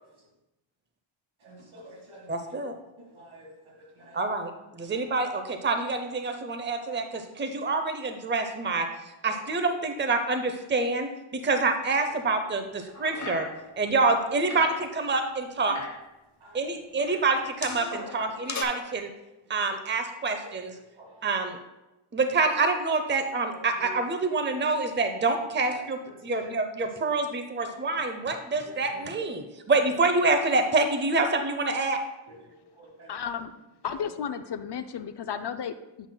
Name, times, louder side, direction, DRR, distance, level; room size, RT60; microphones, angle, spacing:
voice 1, 1.4-2.3 3.1-3.5 4.0-4.1 8.8-8.9 11.4-11.5 13.1-13.3 13.8-13.9 16.4-16.6 21.0-21.1 23.8-23.9 25.7-25.8 26.3-26.5 27.7-27.8 28.6-29.0 32.3-32.4 32.8-33.1, left 2 dB, 75° right, -1 dB, 1.9 m, -45 dB
voice 2, 2.3-2.7 4.1-4.5 4.8-8.9 9.2-13.5 13.8-15.8 16.5-19.1 19.5-20.7 21.2-21.6 22.1-32.0, right 3 dB, 25° right, 6 dB, 0.6 m, -27 dB
sound 1, 12.9-13.8 14.0-14.9 15.5-16.1 17.0-18.6, left 4 dB, 35° left, 0.8 m, -38 dB
voice 3, 33.1-33.5 33.8-36.1, left 7 dB, 60° left, 10 dB, 0.5 m, -33 dB
9.1 x 5.6 x 2.2 m, 1.0 s
wide cardioid pair, 60°, 48 cm